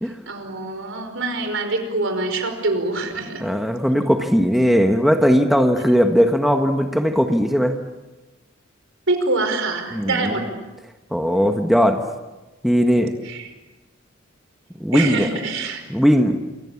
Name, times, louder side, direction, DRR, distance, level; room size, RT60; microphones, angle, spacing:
voice 1, 0.3-3.4 9.1-10.4 13.2-13.5 14.9-15.8, right 2 dB, 65° right, 7 dB, 5.1 m, -24 dB
voice 2, 3.4-7.8 9.9-10.4 11.1-12.0 12.6-13.1 14.8-15.3 15.9-16.4, equal, ahead, 4 dB, 1.4 m, -18 dB
28.5 x 25.5 x 7.2 m, 1.1 s
head